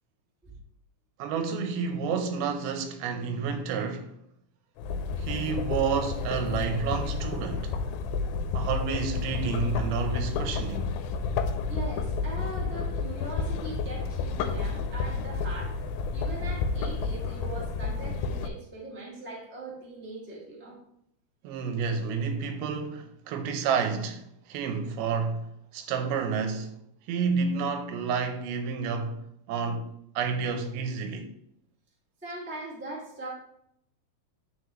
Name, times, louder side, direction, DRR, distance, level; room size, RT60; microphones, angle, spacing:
voice 1, 1.2-4.1 5.2-7.8 8.5-11.0 21.4-24.2 24.5-26.7 27.1-29.9 30.2-31.3, right 5 dB, 90° right, 2.7 m, -30 dB
sound 1, 4.8-18.5, left 4 dB, 85° left, 2.4 m, -31 dB
voice 2, 11.7-20.8 32.2-33.3, right 2 dB, 10° right, 0.5 m, -41 dB
11.0 x 4.0 x 3.1 m
omnidirectional pair, 4.3 m